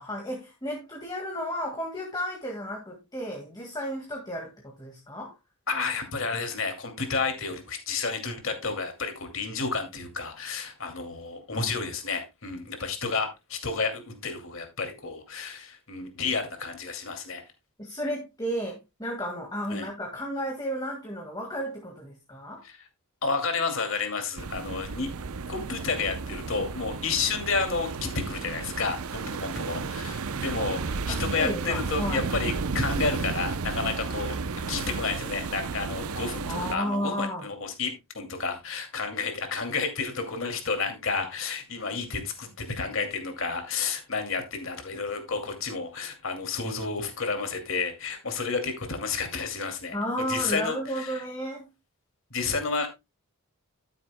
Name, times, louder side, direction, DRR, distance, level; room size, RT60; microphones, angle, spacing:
voice 1, 0.0-5.3 17.8-22.6 31.1-32.3 36.4-37.4 49.9-51.7, equal, 20° left, 1.9 m, -33 dB
voice 2, 5.7-17.4 19.7-19.9 22.6-22.9 23.2-25.1 25.5-34.4 34.7-51.2 52.3-52.9, left 4 dB, 60° left, 2.5 m, -31 dB
sound 1, 24.4-36.8, right 4 dB, 80° right, 0.7 m, -33 dB
12.5 x 9.4 x 2.2 m
head